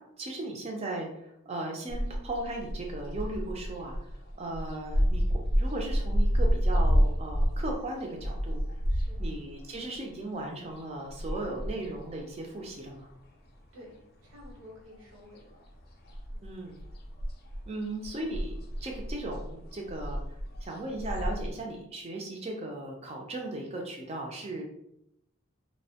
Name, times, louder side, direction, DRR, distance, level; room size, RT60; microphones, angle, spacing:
voice 1, 0.2-4.1 4.4-8.6 9.2-13.1 16.4-16.8 17.7-20.2 20.6-24.6, right 2 dB, 30° right, 1 dB, 0.4 m, -37 dB
sound 1, 1.9-13.5 13.8-15.1 15.4-21.5, equal, 45° left, 0.4 m, -30 dB
voice 2, 8.9-9.2 13.7-15.6 16.3-16.6, left 1 dB, 85° right, -2 dB, 0.9 m, -52 dB
2.6 x 2.1 x 2.7 m, 0.81 s
head